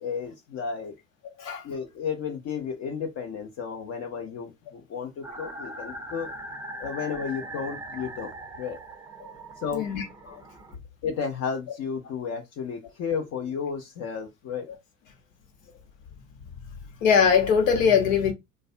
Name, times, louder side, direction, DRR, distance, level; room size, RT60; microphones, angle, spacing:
voice 1, 0.0-0.9 1.6-6.3 6.8-8.8 9.6-9.9 11.0-14.7, left 6 dB, 40° left, 0.7 m, -33 dB
sound 1, 5.2-10.8, right 1 dB, 10° right, 0.5 m, -40 dB
voice 2, 9.7-10.4 14.7-14.8 17.0-18.3, left 7 dB, 75° left, 1.0 m, -22 dB
2.5 x 2.1 x 2.4 m
hypercardioid pair, 75°, 39 cm